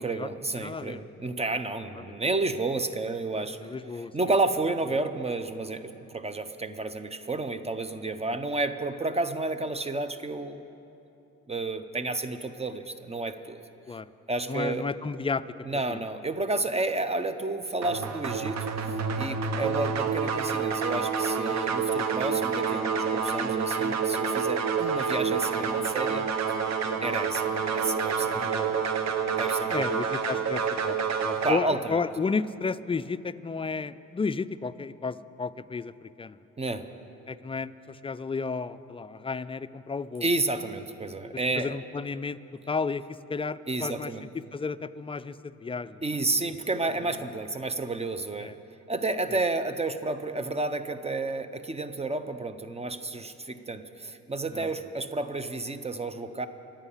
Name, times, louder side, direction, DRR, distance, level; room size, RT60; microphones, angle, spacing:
voice 1, 0.0-3.6 3.9-10.6 11.5-13.6 14.3-14.9 15.7-26.3 27.0-28.9 29.4-30.1 31.4-32.0 36.6-36.9 40.2-41.8 43.7-44.3 46.0-48.5 48.9-56.5, right 2 dB, 20° right, 11 dB, 0.7 m, -31 dB
voice 2, 0.6-1.0 2.1-2.2 3.6-4.1 13.9-14.1 14.5-15.4 15.9-16.0 19.6-19.7 21.7-21.8 26.8-27.0 28.3-28.7 29.7-31.0 31.2-36.4 37.3-40.3 41.6-42.4 42.7-44.1 44.5-46.0 46.4-46.5 48.4-48.5 54.5-54.7, left 4 dB, 20° left, 13 dB, 0.4 m, -32 dB
sound 1, 17.8-31.5, right 6 dB, 60° right, 1.1 m, -28 dB
25.5 x 8.8 x 5.7 m, 3.0 s
cardioid pair, 90°, 30 cm